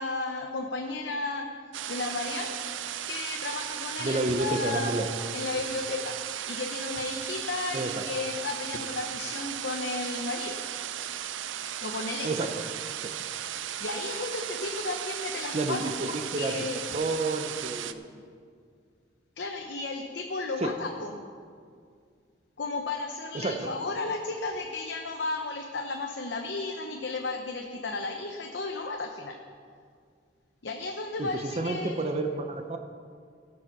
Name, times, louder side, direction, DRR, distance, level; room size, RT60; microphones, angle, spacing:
voice 1, 0.0-1.5 1.9-2.6 3.1-4.9 5.3-6.2 6.5-10.6 11.8-12.3 13.8-15.8 16.1-16.8 19.4-21.1 22.6-29.3 30.6-32.1, left 3 dB, 65° left, 2 dB, 0.8 m, -33 dB
sound 1, 1.7-17.9, right 10 dB, 85° right, 0.5 m, -36 dB
voice 2, 4.0-5.1 7.7-8.0 12.2-12.6 13.0-13.1 15.5-18.2 20.6-20.7 23.3-23.7 31.2-32.8, right 2 dB, 35° right, 6 dB, 0.6 m, -30 dB
17.0 x 6.5 x 5.9 m, 2.1 s
head